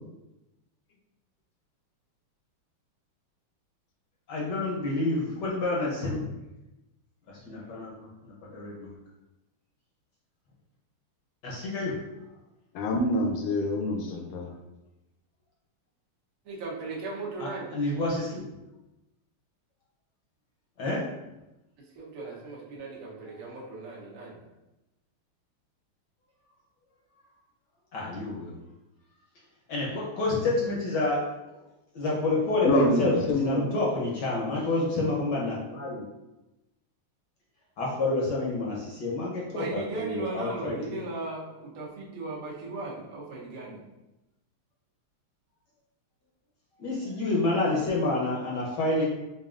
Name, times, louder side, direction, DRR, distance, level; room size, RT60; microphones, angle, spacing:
voice 1, 4.3-6.3 7.4-8.9 11.4-12.0 17.4-18.4 20.8-21.1 27.9-28.6 29.7-31.6 31.9-36.1 37.8-41.0 46.8-49.1, left 2 dB, 65° left, -4 dB, 1.2 m, -28 dB
voice 2, 12.7-14.5 32.6-33.7, left 1 dB, 80° left, 1 dB, 1.5 m, -26 dB
voice 3, 16.4-17.7 21.8-24.4 39.5-43.8, right 3 dB, 65° right, -4 dB, 0.8 m, -37 dB
5.1 x 2.6 x 2.4 m, 0.98 s
omnidirectional pair, 2.4 m